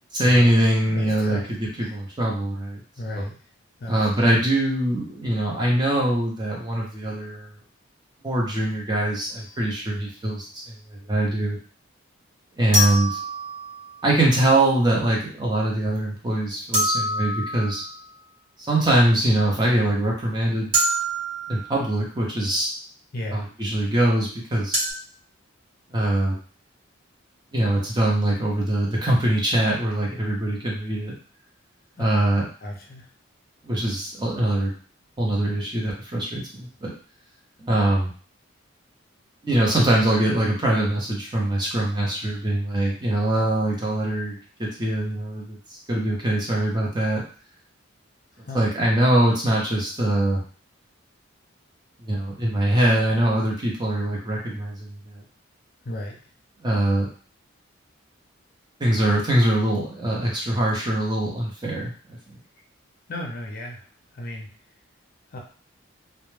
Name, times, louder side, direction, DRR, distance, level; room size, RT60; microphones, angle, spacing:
voice 1, 0.1-2.8 3.9-7.5 8.2-10.7 11.1-11.6 12.6-13.2 14.0-17.8 18.7-20.7 21.5-22.7 23.3-24.8 25.9-26.4 27.5-31.1 32.0-32.4 33.6-34.7 35.2-36.9 37.6-38.1 39.4-47.2 48.5-50.4 52.0-55.2 56.6-57.1 58.8-62.2, right 1 dB, 20° right, -3 dB, 0.6 m, -23 dB
voice 2, 0.9-1.6 1.8-2.0 3.0-3.4 3.8-4.3 23.1-23.4 32.0-33.1 48.3-48.7 55.8-56.2 63.1-63.9 64.1-64.5 65.3-65.4, left 1 dB, 45° left, 0 dB, 0.5 m, -34 dB
sound 1, 9.3-9.4 12.7-14.0 16.7-18.1 20.7-22.0 24.7-24.9, right 1 dB, 40° right, 1.1 m, -26 dB
2.1 x 2.1 x 3.1 m, 0.41 s
head